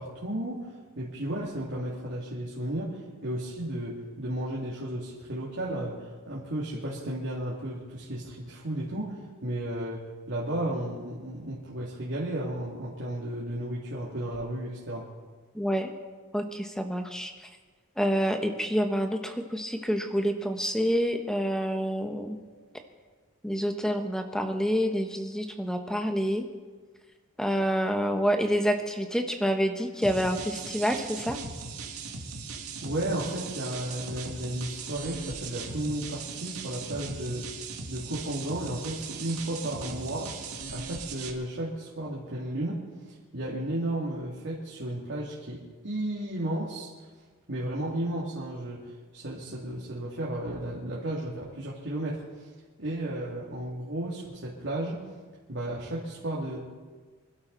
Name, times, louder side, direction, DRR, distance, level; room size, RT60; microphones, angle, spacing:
voice 1, 0.0-15.1 32.8-37.5 37.9-40.3 40.7-42.8 43.1-46.9 47.5-52.5 52.8-55.0 55.5-56.6, right 1 dB, 55° right, -5 dB, 2.5 m, -33 dB
voice 2, 15.5-15.9 16.3-17.3 18.0-22.4 23.4-26.4 27.4-31.4, equal, 5° left, 5 dB, 1.2 m, -27 dB
sound 1, 30.0-41.3, right 4 dB, 85° right, 1.9 m, -39 dB
25.5 x 12.0 x 4.0 m, 1.4 s
head